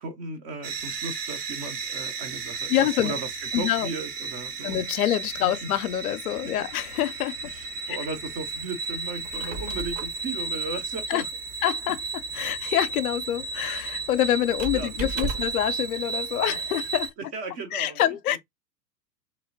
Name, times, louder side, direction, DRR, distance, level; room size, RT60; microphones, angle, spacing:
voice 1, 0.0-5.1 5.4-5.7 6.4-6.7 7.4-11.3 14.7-15.4 16.5-16.6 17.2-18.4, right 3 dB, 25° right, 0.4 m, -37 dB
sound 1, 0.6-17.1, right 5 dB, 70° right, 0.9 m, -34 dB
voice 2, 2.7-3.1 3.5-3.9 4.6-7.3 7.9-8.0 11.1-11.2 11.6-12.0 12.3-17.1 17.7-18.4, left 12 dB, 60° left, 0.5 m, -26 dB
Squeak, 9.1-15.7, right 4 dB, 40° right, 0.8 m, -38 dB
3.1 x 2.7 x 2.4 m
figure-of-eight pair, 95°, 49 cm